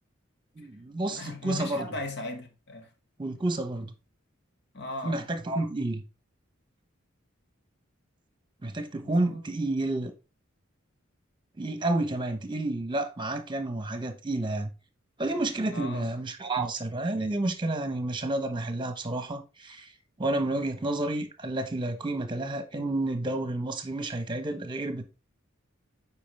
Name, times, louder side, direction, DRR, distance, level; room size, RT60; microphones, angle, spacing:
voice 1, 0.6-1.8 3.2-3.9 5.0-6.0 8.6-10.1 11.6-14.7 15.2-19.9 20.2-25.0, right 2 dB, 25° right, 1.0 m, -30 dB
voice 2, 1.1-2.9 4.7-5.4 9.0-9.4 15.6-16.1, left 2 dB, 60° left, 1.9 m, -38 dB
8.4 x 4.8 x 3.5 m
head